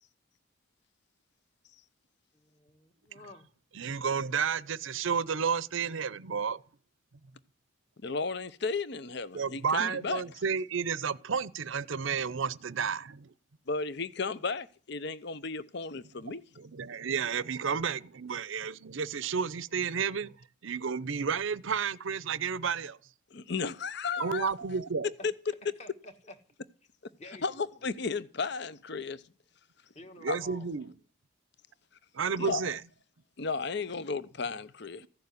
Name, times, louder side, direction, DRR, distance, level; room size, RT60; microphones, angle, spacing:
voice 1, 2.3-3.5 25.2-25.3 25.8-26.3 27.2-27.7 29.9-30.7, left 1 dB, 30° left, 1.7 m, -50 dB
voice 2, 3.8-6.6 9.3-13.3 16.3-20.3 20.6-23.0 24.2-25.1 30.2-30.9 32.1-32.8, right 6 dB, 70° right, 0.6 m, -31 dB
voice 3, 8.0-10.2 13.7-16.4 23.3-24.5 27.4-29.2 30.3-30.4 32.4-32.7 33.4-35.1, left 4 dB, 55° left, 0.7 m, -34 dB
15.0 x 6.9 x 9.6 m
head